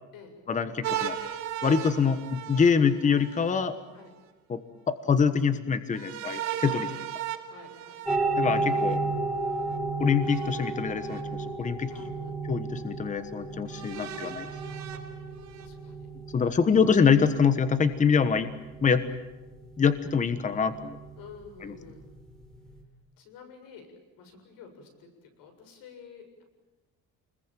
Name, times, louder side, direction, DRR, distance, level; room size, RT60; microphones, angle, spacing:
voice 1, 0.5-1.2 1.6-3.7 4.5-4.6 4.9-6.9 8.4-9.0 10.0-11.9 12.5-14.4 16.3-18.5 18.8-19.0 19.8-21.0 21.6-21.7, left 6 dB, 20° left, 11 dB, 1.2 m, -25 dB
sound 1, 0.8-3.5 5.9-9.0 10.2-11.2 11.9-12.0 13.7-15.7, right 10 dB, 55° right, 4.0 m, -37 dB
voice 2, 6.6-7.1 7.5-8.0 10.2-10.3 11.9-12.4 13.9-15.0 15.5-16.1 21.2-22.1 23.2-23.9 24.2-26.4, left 5 dB, 90° left, 6 dB, 7.3 m, -50 dB
sound 2, 8.0-22.8, right 3 dB, ahead, 3.6 m, -34 dB
29.0 x 21.0 x 9.1 m, 1.1 s
cardioid pair, 155°, 33 cm